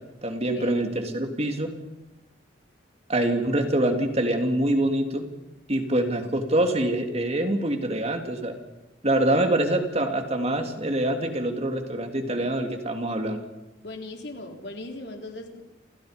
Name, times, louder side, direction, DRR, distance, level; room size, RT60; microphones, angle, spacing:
voice 1, 0.0-1.7 3.1-5.3 5.7-8.5 9.0-13.4, right 1 dB, 35° right, 5 dB, 3.1 m, -25 dB
voice 2, 13.8-15.6, left 2 dB, 65° left, 3 dB, 4.0 m, -38 dB
29.5 x 28.0 x 5.3 m, 0.95 s
head